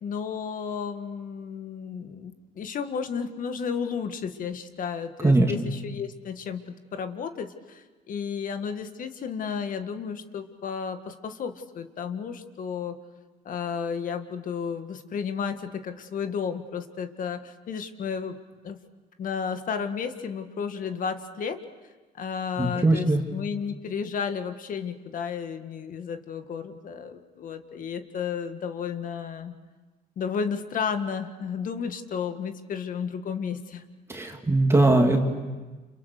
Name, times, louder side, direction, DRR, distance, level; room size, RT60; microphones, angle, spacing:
voice 1, 0.0-13.0 13.5-18.4 18.6-18.8 19.2-21.6 22.1-29.5 30.2-33.8, left 6 dB, 55° left, 8 dB, 1.9 m, -33 dB
voice 2, 22.6-23.2 34.1-35.2, right 2 dB, 15° right, 2 dB, 2.5 m, -20 dB
29.5 x 28.5 x 6.7 m, 1.3 s
cardioid pair, 110°, 17 cm